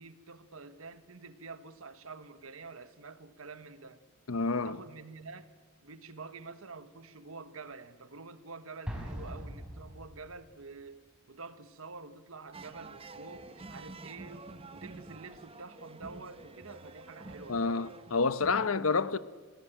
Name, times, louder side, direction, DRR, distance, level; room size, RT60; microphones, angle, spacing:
voice 1, 0.0-4.0 4.5-5.5 5.8-17.9 18.6-19.2, right 4 dB, 80° right, 1.4 m, -48 dB
voice 2, 4.3-4.8 17.5-19.2, left 4 dB, 90° left, 0.9 m, -29 dB
Explosion, 8.8-10.6, equal, 5° right, 4.7 m, -41 dB
sound 1, 12.5-18.6, right 2 dB, 25° right, 1.0 m, -49 dB
27.0 x 17.5 x 9.1 m
head